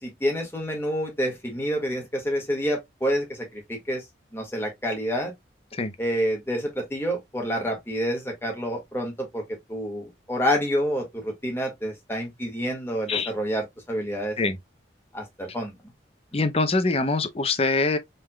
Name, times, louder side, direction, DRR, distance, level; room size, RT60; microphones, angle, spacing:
voice 1, 0.0-4.0 4.3-5.3 6.0-9.4 9.7-14.4 15.1-15.8, equal, 15° left, 1.8 m, -28 dB
voice 2, 16.3-18.0, left 3 dB, 35° left, 0.7 m, -23 dB
5.3 x 3.7 x 2.2 m
head